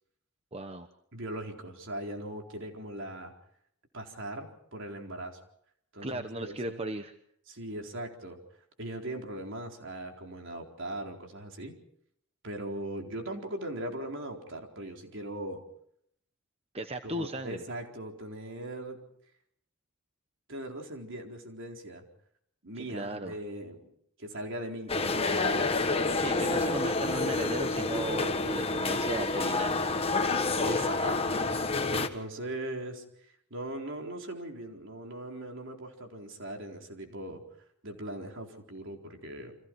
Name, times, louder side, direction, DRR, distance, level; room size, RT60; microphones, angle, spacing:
voice 1, 0.5-0.9 6.0-7.1 16.7-17.6 22.8-23.3 26.2-29.9, right 1 dB, 25° right, 8 dB, 1.0 m, -36 dB
voice 2, 1.1-3.3 3.9-5.4 5.9-6.8 7.5-8.4 8.8-11.8 12.4-15.6 17.0-19.1 20.5-22.0 22.6-23.9 24.2-25.8 30.6-31.4 31.9-33.0 33.5-37.4 37.8-39.6, right 1 dB, 55° right, 3 dB, 4.2 m, -39 dB
sound 1, 24.9-32.1, left 3 dB, 25° left, 1.5 m, -28 dB
30.0 x 25.5 x 4.7 m, 0.71 s
head